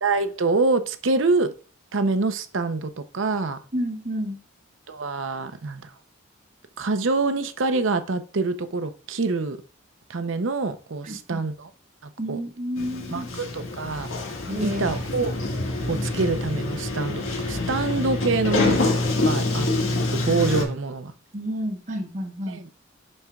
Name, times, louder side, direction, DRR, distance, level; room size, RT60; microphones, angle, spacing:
voice 1, 0.0-1.5 1.9-3.6 4.9-5.9 6.8-9.6 10.1-11.7 12.0-12.4 13.1-14.1 14.6-15.4 15.9-21.1 22.5-22.6, right 3 dB, 65° right, 0.7 m, -26 dB
voice 2, 3.7-4.4 11.0-11.4 12.2-13.3 14.5-15.0 21.3-22.6, equal, 40° right, 1.0 m, -30 dB
Sliding door, 12.8-20.6, left 2 dB, 75° left, 1.8 m, -26 dB
11.0 x 4.3 x 2.4 m
head